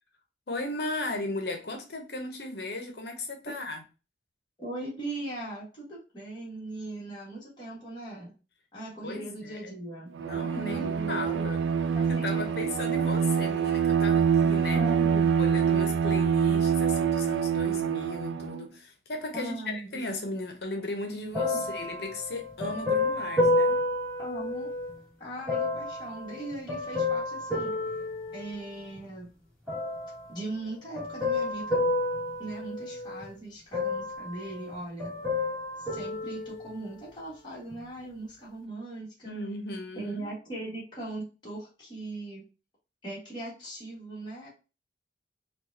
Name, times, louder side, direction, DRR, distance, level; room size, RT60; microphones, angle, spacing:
voice 1, 0.5-3.8 9.0-9.7 10.2-11.6 12.1-14.8 15.4-23.8 39.2-40.3, left 2 dB, 65° left, 0.9 m, -36 dB
voice 2, 4.6-8.3 8.7-10.1 10.7-11.5 11.9-12.7 14.7-15.5 19.3-19.9 21.5-21.6 24.2-24.7 25.2-27.7 28.3-29.3 30.3-31.8 32.4-35.1 35.8-39.3 39.9-42.5 43.0-44.5, right 2 dB, 25° left, 1.7 m, -39 dB
Bowed string instrument, 10.1-18.6, right 7 dB, 90° right, 0.3 m, -25 dB
sound 1, 21.3-24.9 25.5-29.0 29.7-30.3 30.9-33.3 33.7-34.7 35.0-37.0 37.7-37.8, left 2 dB, 10° left, 1.7 m, -30 dB
4.5 x 2.4 x 2.7 m
head